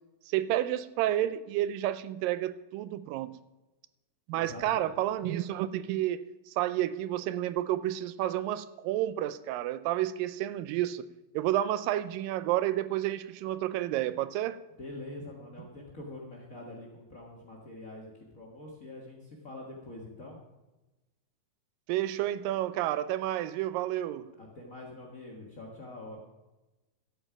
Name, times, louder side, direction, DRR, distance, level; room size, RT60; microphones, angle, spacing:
voice 1, 0.3-3.4 4.3-11.1 11.3-14.6 21.9-24.3, right 13 dB, 80° right, 14 dB, 2.1 m, -30 dB
voice 2, 4.3-4.9 14.8-20.4 24.4-26.2, left 2 dB, 60° left, -1 dB, 0.8 m, -45 dB
13.0 x 8.7 x 5.8 m, 1.1 s
omnidirectional pair, 4.4 m